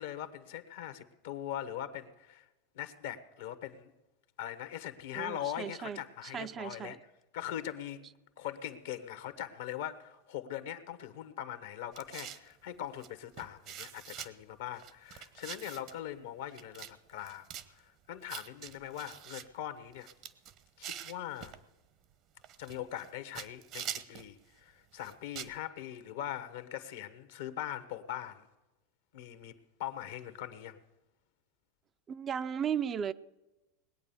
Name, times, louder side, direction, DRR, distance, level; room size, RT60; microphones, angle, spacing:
voice 1, 0.0-2.5 2.7-3.9 4.4-7.0 7.3-8.0 8.4-20.1 20.8-21.5 22.6-28.5 29.1-30.8, left 11 dB, 70° left, 1.1 m, -41 dB
voice 2, 5.1-6.0 6.3-7.0 32.1-33.1, right 8 dB, 30° right, 0.5 m, -35 dB
sound 1, 11.9-12.5 13.0-13.1 13.4-14.3 14.8-16.0 16.5-16.9 17.2-17.7 18.3-19.4 19.9-21.6 22.4-23.1 23.3-24.3 24.9-25.6, right 10 dB, 50° right, 1.0 m, -44 dB
20.0 x 8.7 x 7.0 m
hypercardioid pair, 95°, 0 cm